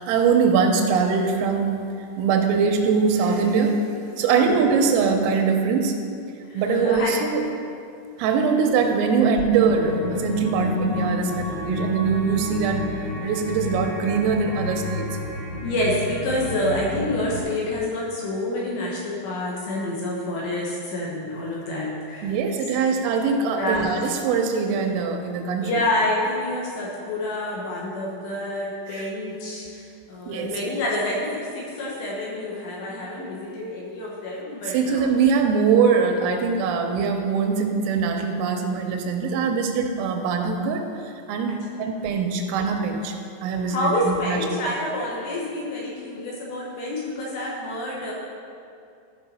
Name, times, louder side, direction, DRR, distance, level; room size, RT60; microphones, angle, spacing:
voice 1, 0.0-1.9 2.2-3.8 4.2-5.9 6.5-7.4 8.2-12.9 13.2-15.2 22.2-25.8 28.9-29.1 30.3-30.7 34.7-40.8 41.3-43.2 43.4-44.5, right 5 dB, 90° right, 4 dB, 3.4 m, -22 dB
voice 2, 4.3-4.7 6.5-7.2 15.6-22.3 23.5-23.9 25.6-29.8 30.1-35.1 41.5-41.6 43.7-48.1, left 1 dB, 75° left, -4 dB, 2.8 m, -28 dB
sound 1, 9.5-17.4, left 1 dB, 55° left, 3.8 m, -30 dB
14.0 x 5.5 x 4.3 m, 2.5 s
omnidirectional pair, 6.0 m